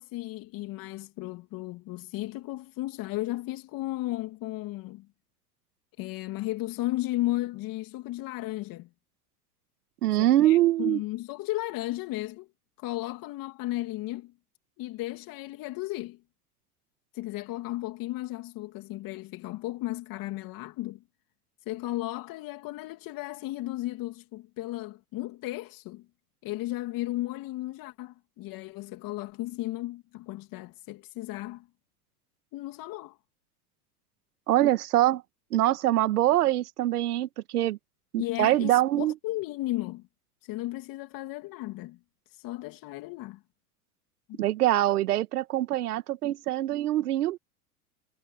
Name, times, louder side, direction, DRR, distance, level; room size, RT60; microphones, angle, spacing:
voice 1, 0.0-5.1 6.0-8.9 10.2-12.5 12.8-14.3 14.8-16.2 17.1-21.0 21.7-26.0 26.4-31.7 32.5-33.2 38.2-40.1 40.4-42.0 42.3-43.4 44.3-44.4, left 17 dB, 45° left, 3.0 m, -35 dB
voice 2, 10.0-11.0 34.5-35.2 35.5-37.8 38.1-39.1 44.4-47.4, right 14 dB, 75° right, 1.9 m, -24 dB
hypercardioid pair, 100°, 46 cm